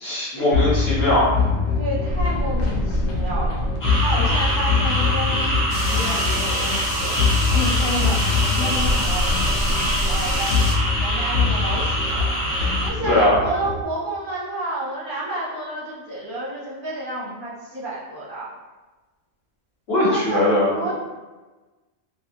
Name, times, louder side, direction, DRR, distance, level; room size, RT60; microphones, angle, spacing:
voice 1, 0.0-1.2 13.1-13.3 19.9-20.8, left 1 dB, 65° left, -7 dB, 1.2 m, -20 dB
sound 1, 0.5-13.8, left 4 dB, 85° left, 0.9 m, -23 dB
voice 2, 1.8-3.6 4.0-7.1 7.5-8.2 8.5-9.3 10.0-10.6 11.0-12.3 12.8-18.5 20.1-20.9, right 1 dB, 55° right, -7 dB, 0.8 m, -30 dB
sound 2, 3.8-12.9, right 1 dB, 20° left, 0.6 m, -25 dB
sound 3, 5.7-10.7, right 1 dB, 30° right, 0.5 m, -32 dB
2.8 x 2.5 x 2.4 m, 1.2 s
omnidirectional pair, 1.1 m